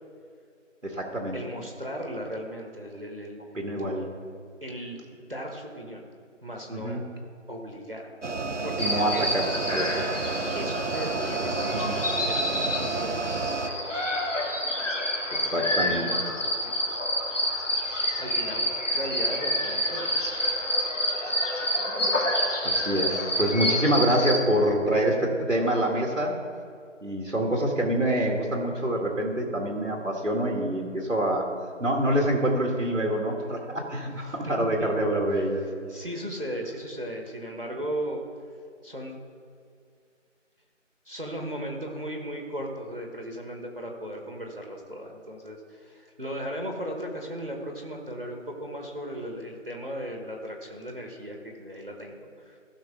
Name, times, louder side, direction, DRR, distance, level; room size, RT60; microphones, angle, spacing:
voice 1, 0.8-1.4 3.5-4.1 6.7-7.1 8.8-10.3 11.7-12.0 15.3-16.0 17.8-18.2 22.6-26.4 27.0-31.5 31.8-35.6, right 1 dB, 85° right, 0 dB, 2.0 m, -26 dB
voice 2, 1.3-3.4 3.7-3.9 4.6-6.0 6.4-7.0 7.5-8.1 8.6-9.5 10.5-13.2 13.6-14.3 15.4-17.0 18.2-20.2 34.1-34.3 34.8-34.9 35.9-38.2 38.8-39.2 41.0-52.6, equal, 45° right, 1 dB, 1.4 m, -37 dB
sound 1, 8.2-13.7, right 3 dB, 65° right, 0.8 m, -30 dB
sound 2, 8.8-24.4, equal, 75° left, 1.8 m, -28 dB
15.5 x 6.4 x 3.7 m, 2.3 s
figure-of-eight pair, 180°, 38 cm